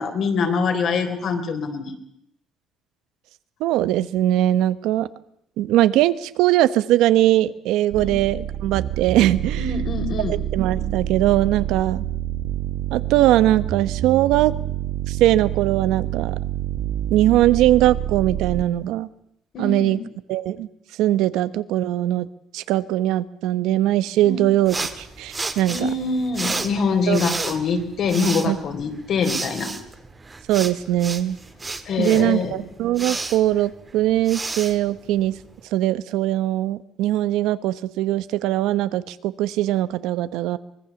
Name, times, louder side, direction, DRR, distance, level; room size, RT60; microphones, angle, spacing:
voice 1, 0.0-1.9 8.0-8.1 9.6-10.4 19.5-20.0 24.2-24.5 25.7-29.7 31.9-32.5, left 4 dB, 50° left, 5 dB, 3.8 m, -24 dB
voice 2, 3.6-5.1 5.6-9.7 10.3-12.0 12.9-14.5 15.1-16.4 17.1-19.1 19.6-20.0 20.3-20.7 21.0-22.3 22.5-25.8 27.1-27.2 28.5-28.6 30.5-31.4 32.0-35.4 35.7-40.6, right 14 dB, 85° right, 14 dB, 1.1 m, -20 dB
sound 1, 7.9-18.7, right 12 dB, 70° right, 1.3 m, -27 dB
sound 2, 24.7-35.6, right 3 dB, 15° right, 1.8 m, -32 dB
24.5 x 21.0 x 7.2 m, 0.75 s
cardioid pair, 150°, 0 cm